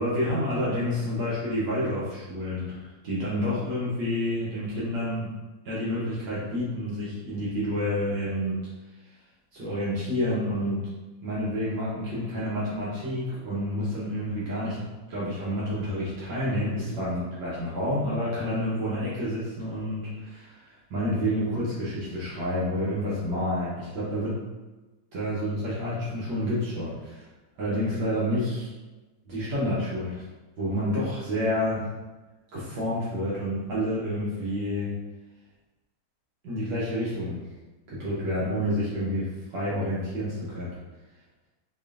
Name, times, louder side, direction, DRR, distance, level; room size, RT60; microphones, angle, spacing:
voice 1, 0.0-5.3 5.6-8.6 9.5-10.8 11.2-14.8 15.1-24.4 25.1-27.2 27.6-28.7 29.2-30.2 30.6-31.8 32.5-34.9 36.4-37.4 37.9-40.7, equal, 70° right, -9 dB, 1.7 m, -29 dB
5.3 x 2.4 x 2.4 m, 1.2 s
omnidirectional pair, 2.2 m